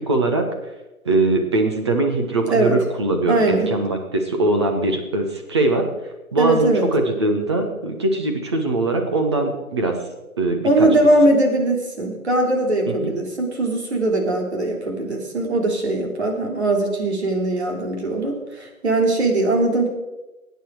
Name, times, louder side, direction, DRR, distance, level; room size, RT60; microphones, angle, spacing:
voice 1, 0.1-0.4 1.0-5.9 6.3-10.0 10.4-10.9 13.0-13.1, right 2 dB, 20° right, 3 dB, 1.1 m, -21 dB
voice 2, 2.5-2.8 3.3-3.7 6.4-6.9 10.6-19.9, right 2 dB, 50° right, 1 dB, 3.3 m, -20 dB
21.0 x 9.4 x 4.7 m, 1.1 s
hypercardioid pair, 165°, 42 cm